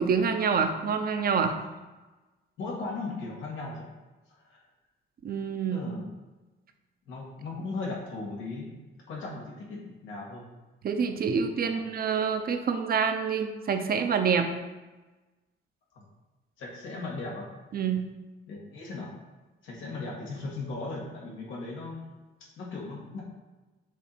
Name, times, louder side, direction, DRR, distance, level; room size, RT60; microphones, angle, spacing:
voice 1, 0.0-1.6 5.2-5.9 10.8-14.5 17.7-18.1, right 6 dB, 50° right, 6 dB, 0.7 m, -27 dB
voice 2, 2.6-3.9 4.4-4.6 5.7-6.1 7.1-8.7 9.1-10.5 11.7-11.8 15.9-16.0 16.6-17.5 18.5-19.1 19.6-22.1 22.6-23.2, left 3 dB, 80° left, -3 dB, 1.9 m, -37 dB
7.3 x 2.7 x 5.8 m, 1.2 s
cardioid pair, 90°, 20 cm